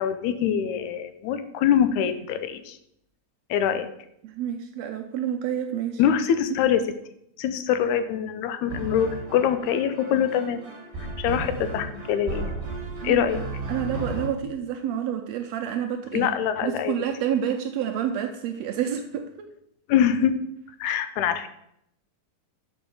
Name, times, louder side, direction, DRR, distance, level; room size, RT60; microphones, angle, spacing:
voice 1, 0.0-2.8 3.5-3.9 6.0-6.8 7.4-10.6 11.2-12.5 13.0-13.4 16.1-16.9 19.9-20.3 20.8-21.5, left 9 dB, 80° left, 10 dB, 2.0 m, -24 dB
voice 2, 4.2-6.0 13.0-13.3 13.7-16.3 16.6-19.5, right 9 dB, 80° right, 5 dB, 1.5 m, -29 dB
sound 1, 8.7-14.3, right 2 dB, 30° right, 1.4 m, -34 dB
6.9 x 5.4 x 5.3 m, 0.76 s
omnidirectional pair, 3.5 m